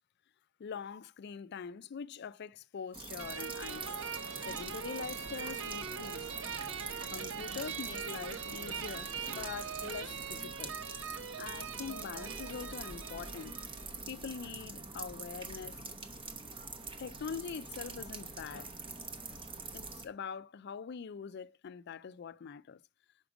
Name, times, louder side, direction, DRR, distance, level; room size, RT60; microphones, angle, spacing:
voice 1, 0.6-4.0 4.4-6.3 7.1-10.8 11.4-13.6 14.1-15.8 17.0-18.7 19.7-22.8, left 6 dB, 55° left, 0.4 m, -43 dB
sound 1, 2.9-20.1, right 3 dB, 25° right, 0.9 m, -45 dB
sound 2, 3.2-13.9, right 6 dB, 70° right, 0.9 m, -42 dB
sound 3, 3.7-10.4, right 5 dB, 50° right, 0.4 m, -53 dB
5.9 x 5.0 x 6.1 m
head